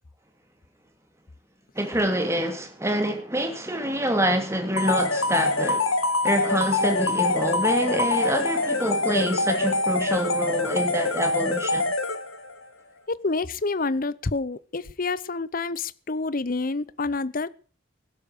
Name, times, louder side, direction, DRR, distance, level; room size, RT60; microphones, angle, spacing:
voice 1, 1.7-6.0 6.2-11.9, right 1 dB, 15° right, 2.9 m, -26 dB
sound 1, 4.8-12.5, left 3 dB, 85° left, 2.0 m, -25 dB
voice 2, 13.1-17.5, left 3 dB, 45° left, 0.7 m, -28 dB
15.5 x 12.0 x 6.6 m
head